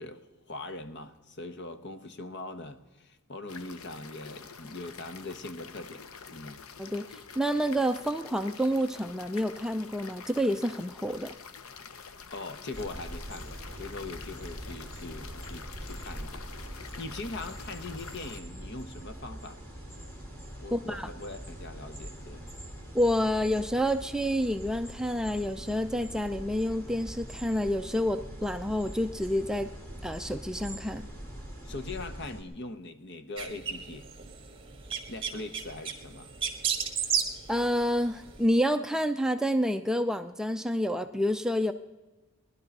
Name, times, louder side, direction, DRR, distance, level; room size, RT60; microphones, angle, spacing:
voice 1, 0.0-6.6 12.3-19.6 20.6-22.4 31.6-34.1 35.1-36.3, left 2 dB, 55° left, 1.0 m, -41 dB
sound 1, 3.5-18.4, left 6 dB, 85° left, 0.8 m, -47 dB
voice 2, 7.4-11.3 20.7-21.1 22.9-29.7 30.0-31.1 37.5-41.7, equal, 5° right, 0.4 m, -28 dB
sound 2, 12.7-32.4, right 1 dB, 15° left, 2.6 m, -43 dB
sound 3, 33.4-38.5, right 7 dB, 25° right, 1.6 m, -34 dB
19.0 x 11.5 x 5.3 m
head